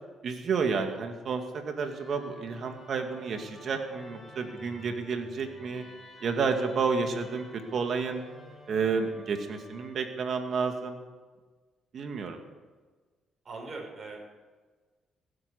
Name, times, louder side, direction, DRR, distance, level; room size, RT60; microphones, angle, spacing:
voice 1, 0.2-5.8 6.2-7.4 7.7-8.2 8.7-11.0 11.9-12.4, right 5 dB, 60° right, 5 dB, 2.3 m, -30 dB
Musical instrument, 1.3-10.5, left 1 dB, 5° left, 5.0 m, -51 dB
voice 2, 13.4-14.3, right 3 dB, 40° right, 0 dB, 6.1 m, -41 dB
17.0 x 8.9 x 8.5 m, 1.4 s
cardioid pair, 90°, 0 cm